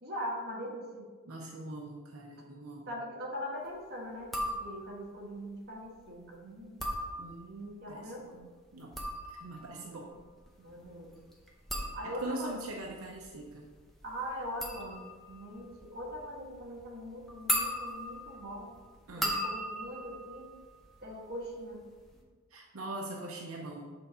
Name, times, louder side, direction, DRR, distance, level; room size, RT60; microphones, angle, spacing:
voice 1, 0.0-1.1 2.9-6.9 7.8-8.2 9.6-10.2 10.6-11.1 11.9-12.6 14.0-18.7 19.2-20.5 21.0-21.8 23.0-23.1, equal, 45° right, -2 dB, 1.4 m, -41 dB
voice 2, 1.3-2.9 7.2-8.5 8.7-8.9 9.3-10.1 12.2-13.7 19.1-19.3 22.5-23.9, right 2 dB, 75° right, -1 dB, 0.8 m, -42 dB
sound 1, 4.2-5.1 6.6-7.7 8.7-21.4 21.7-22.2, equal, ahead, 0.8 m, -38 dB
6.8 x 3.9 x 5.5 m, 1.4 s
head